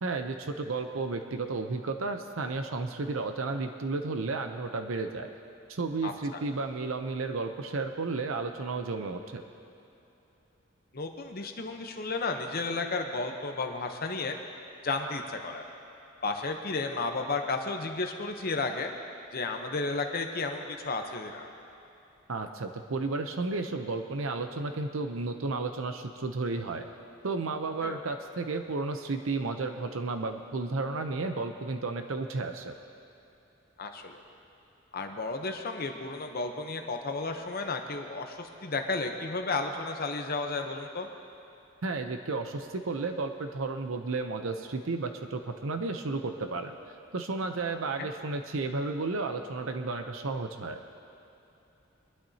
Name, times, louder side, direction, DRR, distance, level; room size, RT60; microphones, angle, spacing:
voice 1, 0.0-5.3 5.7-9.4 22.3-26.8 27.2-32.8 41.8-50.8, right 3 dB, 75° right, 6 dB, 0.7 m, -33 dB
voice 2, 6.0-6.4 10.9-14.4 14.8-15.6 16.2-18.9 19.3-21.5 27.8-28.0 33.8-34.2 34.9-41.1 48.0-48.1, left 3 dB, 45° left, 4 dB, 0.8 m, -33 dB
22.5 x 12.0 x 2.8 m, 2.9 s
head